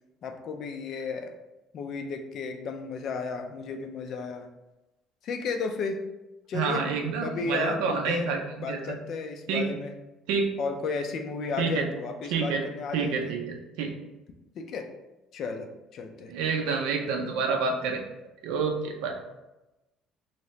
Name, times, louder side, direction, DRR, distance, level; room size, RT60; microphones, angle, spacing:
voice 1, 0.2-1.3 1.7-4.5 5.2-6.0 6.5-6.9 7.2-8.3 8.6-9.9 10.6-13.3 14.6-14.9 15.3-16.3, left 4 dB, 45° left, 5 dB, 0.4 m, -33 dB
voice 2, 6.5-9.0 9.5-9.7 10.3-10.5 11.6-11.8 12.3-12.6 12.9-13.9 16.3-18.0 18.4-19.2, right 5 dB, 85° right, 3 dB, 0.5 m, -28 dB
2.9 x 2.7 x 3.1 m, 1.0 s
cardioid pair, 145°, 0 cm